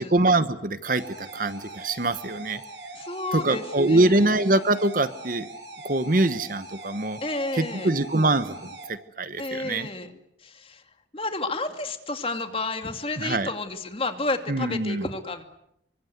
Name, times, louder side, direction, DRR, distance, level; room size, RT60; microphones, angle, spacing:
voice 1, 0.0-2.6 3.3-5.5 5.8-7.2 7.5-9.9 13.2-13.5 14.5-15.0, right 2 dB, 50° right, 13 dB, 1.1 m, -24 dB
sound 1, 0.8-8.8, right 2 dB, 85° right, 7.7 m, -42 dB
voice 2, 2.9-4.3 7.2-7.9 9.4-10.1 10.4-10.8 11.1-15.4, left 2 dB, 30° left, 7 dB, 2.5 m, -31 dB
27.0 x 24.5 x 8.1 m, 0.78 s
head